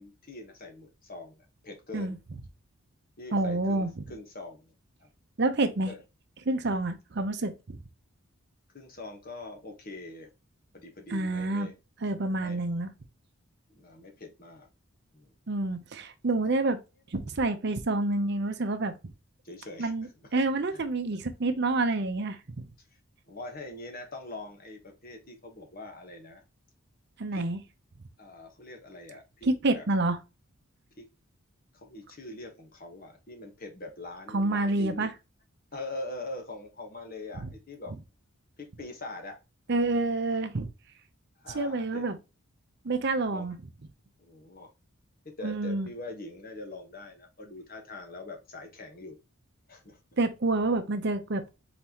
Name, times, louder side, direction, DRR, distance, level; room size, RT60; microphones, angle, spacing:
voice 1, 0.0-2.2 3.2-4.7 5.0-5.1 5.8-6.0 8.7-10.3 10.7-11.7 12.4-12.6 13.7-14.7 15.1-15.3 19.4-19.9 20.7-20.8 23.3-26.4 27.3-27.5 28.2-29.8 31.0-31.1 31.7-35.1 35.7-37.9 38.6-39.4 41.4-42.0 43.3-43.5 44.2-44.7 45.2-49.2 49.7-50.0, left 2 dB, 40° left, 1.2 m, -43 dB
voice 2, 3.3-3.9 5.4-5.9 6.5-7.8 11.1-11.7 12.0-12.9 15.5-16.8 17.1-19.0 19.8-22.6 27.2-27.6 29.4-30.2 34.3-35.1 37.4-37.5 39.7-40.7 41.5-42.2 42.8-43.6 45.4-45.9 50.2-51.4, right 2 dB, 50° right, 0.6 m, -28 dB
4.2 x 4.0 x 2.9 m
head